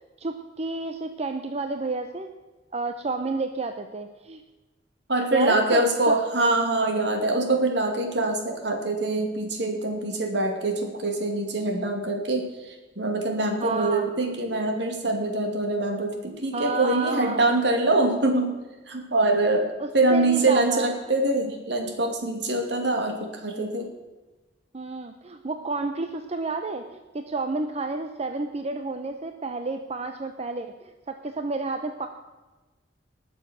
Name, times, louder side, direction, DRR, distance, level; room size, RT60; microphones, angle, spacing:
voice 1, 0.2-2.3 2.7-4.4 5.3-6.2 13.6-14.1 16.5-17.4 19.8-20.9 24.7-32.1, right 3 dB, 35° right, 7 dB, 0.7 m, -30 dB
voice 2, 5.1-18.5 18.9-19.7 19.9-23.9, right 2 dB, 65° right, 4 dB, 2.4 m, -24 dB
19.5 x 7.0 x 6.2 m, 1.2 s
head